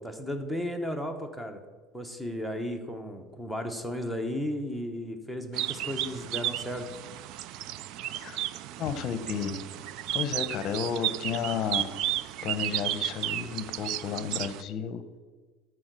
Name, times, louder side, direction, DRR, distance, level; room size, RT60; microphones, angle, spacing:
voice 1, 0.0-1.6 1.9-6.9, equal, 5° right, 6 dB, 0.9 m, -34 dB
sound 1, 5.5-14.6, right 13 dB, 50° right, 0.3 m, -33 dB
voice 2, 8.8-9.6 10.1-11.9 12.4-15.0, left 7 dB, 35° left, 11 dB, 0.8 m, -32 dB
13.5 x 4.7 x 6.7 m, 1.4 s
cardioid pair, 170°, 0 cm